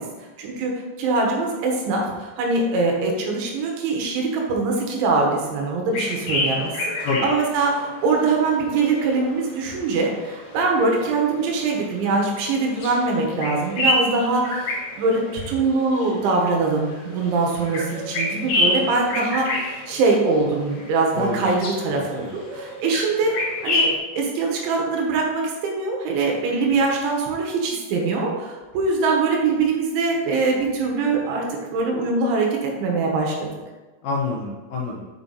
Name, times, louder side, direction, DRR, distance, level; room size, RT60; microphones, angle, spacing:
voice 1, 0.4-0.7 1.0-31.4 31.7-33.5, right 3 dB, 85° right, 0 dB, 3.7 m, -23 dB
sound 1, 5.9-24.0, left 1 dB, 55° left, 2.8 m, -29 dB
voice 2, 21.2-21.5 21.9-22.4 34.0-35.1, left 3 dB, 75° left, -1 dB, 2.3 m, -27 dB
7.0 x 5.8 x 4.0 m, 1.2 s
omnidirectional pair, 5.2 m